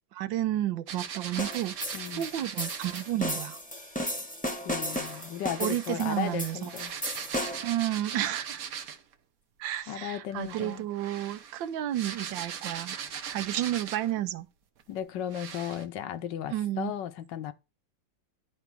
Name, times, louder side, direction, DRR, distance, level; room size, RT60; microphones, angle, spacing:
voice 1, 0.1-3.6 5.6-6.7 7.6-8.6 9.6-13.0 13.3-14.5 16.5-16.9, right 13 dB, 85° right, 1.4 m, -31 dB
sound 1, 0.9-3.1 4.8-9.1 10.3-14.2 14.8-14.9 15.3-15.9, right 8 dB, 60° right, 1.1 m, -40 dB
sound 2, 1.4-7.8, equal, 5° left, 0.8 m, -35 dB
voice 2, 1.9-2.3 4.6-6.9 9.9-10.9 14.9-17.5, left 10 dB, 75° left, 1.4 m, -35 dB
10.5 x 4.5 x 4.7 m
omnidirectional pair, 2.0 m